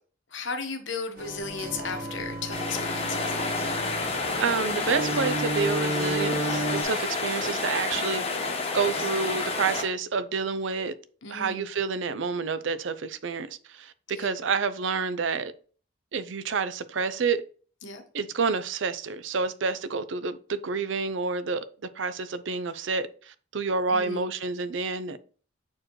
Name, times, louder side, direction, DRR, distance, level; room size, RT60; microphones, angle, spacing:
voice 1, 0.3-3.2 11.2-11.7 14.2-14.4 17.8-18.0 23.9-24.3, left 4 dB, 70° left, 1.1 m, -35 dB
sound 1, 1.2-6.8, right 1 dB, 50° right, 1.4 m, -33 dB
sound 2, 2.5-9.8, left 3 dB, 30° left, 1.0 m, -29 dB
voice 2, 4.3-8.2 8.7-10.9 11.3-13.9 14.2-15.5 16.1-17.4 18.1-21.6 22.0-25.2, right 5 dB, 70° right, 0.5 m, -29 dB
7.6 x 4.5 x 3.1 m
head